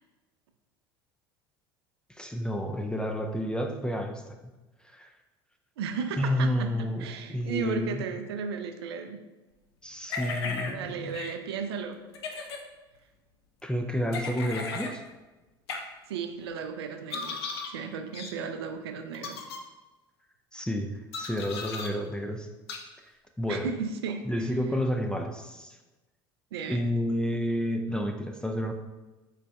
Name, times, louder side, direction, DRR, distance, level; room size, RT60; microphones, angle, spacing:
voice 1, 2.1-4.2 4.8-5.1 6.2-8.0 9.8-11.2 13.6-15.0 20.5-20.9 21.2-22.5 23.4-23.7 24.3-25.8 26.7-28.7, equal, 5° left, 4 dB, 0.3 m, -30 dB
voice 2, 5.8-9.2 10.4-12.0 16.1-17.4 17.7-19.4 23.5-24.5 26.5-26.8, right 6 dB, 80° right, 6 dB, 0.4 m, -35 dB
sound 1, 10.1-10.7 11.1-11.3 12.1-12.6 14.1-14.9 15.7-15.8 17.1-17.7 18.1-18.3 19.1-19.6 21.1-21.9 22.7-22.8, left 4 dB, 80° left, 0.5 m, -35 dB
3.9 x 3.2 x 2.3 m, 1.1 s
hypercardioid pair, 70°, 13 cm